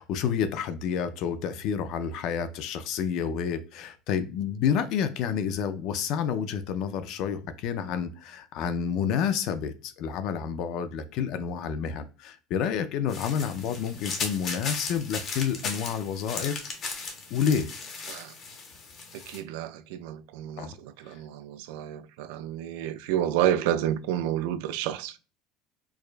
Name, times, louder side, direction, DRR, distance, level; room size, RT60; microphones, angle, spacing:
voice 1, 0.0-16.6 17.3-17.7 20.6-20.7, left 7 dB, 50° left, 0.4 m, -29 dB
sound 1, 13.1-19.4, left 4 dB, 30° left, 0.7 m, -36 dB
voice 2, 19.1-25.2, right 11 dB, 85° right, 0.3 m, -30 dB
4.6 x 2.3 x 2.4 m
cardioid pair, 175°, 0 cm